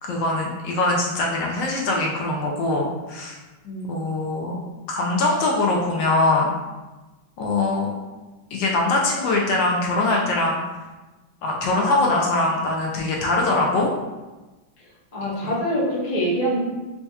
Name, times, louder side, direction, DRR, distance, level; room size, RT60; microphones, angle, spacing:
voice 1, 0.0-3.4 3.9-4.6 4.9-6.5 7.4-7.9 8.5-10.6 11.4-13.9 15.4-15.5, left 2 dB, 75° left, -1 dB, 1.2 m, -22 dB
voice 2, 15.1-16.6, equal, 40° left, -6 dB, 0.5 m, -24 dB
4.3 x 2.7 x 2.3 m, 1.1 s
omnidirectional pair, 2.1 m